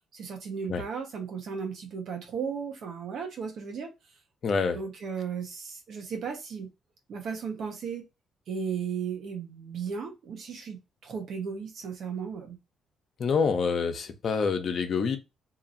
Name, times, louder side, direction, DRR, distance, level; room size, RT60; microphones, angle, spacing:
voice 1, 0.1-3.9 4.7-6.7 7.1-8.0 8.5-12.6, right 6 dB, 65° right, 1.1 m, -35 dB
voice 2, 4.4-4.8 13.2-15.2, left 5 dB, 55° left, 0.7 m, -26 dB
2.9 x 2.8 x 2.6 m
cardioid pair, 90°, 0 cm